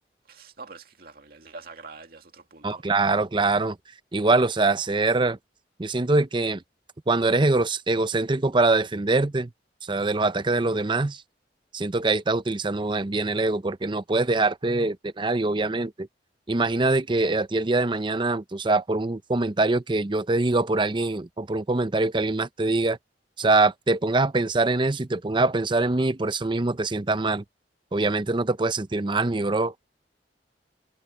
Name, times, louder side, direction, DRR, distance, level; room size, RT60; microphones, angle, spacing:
voice 1, 0.2-2.8, right 4 dB, 55° right, 2.3 m, -45 dB
voice 2, 2.6-3.8 4.1-5.4 5.8-6.6 7.1-9.5 9.8-11.2 11.7-16.1 16.5-23.0 23.4-27.4 27.9-29.9, right 3 dB, 25° right, 0.7 m, -23 dB
head